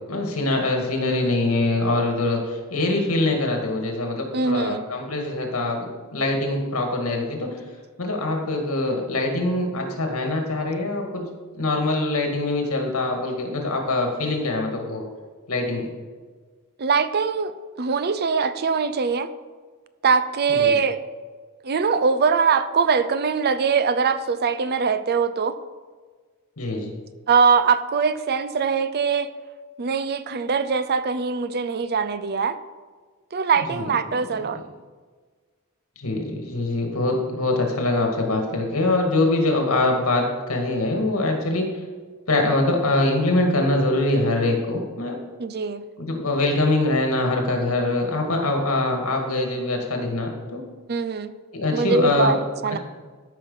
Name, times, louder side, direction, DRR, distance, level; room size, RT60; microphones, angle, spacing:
voice 1, 0.1-7.6 8.0-11.3 11.5-15.1 15.5-15.8 20.5-20.8 26.6-26.9 33.6-33.9 36.0-41.7 42.3-45.2 46.0-50.6 51.5-52.4, left 2 dB, 80° left, 2 dB, 2.1 m, -23 dB
voice 2, 4.3-4.8 16.8-17.5 17.8-19.3 20.0-21.0 21.6-25.6 27.3-29.3 29.8-32.6 33.3-34.6 45.4-45.8 50.9-51.3 51.7-52.8, right 5 dB, 50° right, 12 dB, 0.6 m, -22 dB
13.5 x 5.8 x 5.6 m, 1.5 s
head